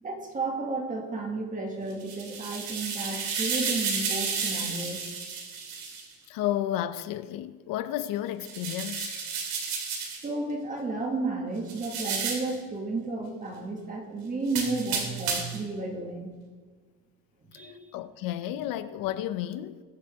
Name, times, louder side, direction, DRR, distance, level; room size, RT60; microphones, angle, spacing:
voice 1, 0.0-5.0 10.1-16.3 17.5-17.8, right 3 dB, 25° right, 2.0 m, -32 dB
sound 1, 1.9-6.0 8.4-10.3 11.7-12.6 14.5-15.7, right 5 dB, 85° right, 2.8 m, -32 dB
voice 2, 6.3-9.2 17.9-19.8, left 12 dB, 75° left, 0.8 m, -32 dB
21.0 x 7.6 x 3.6 m
cardioid pair, 150°, 34 cm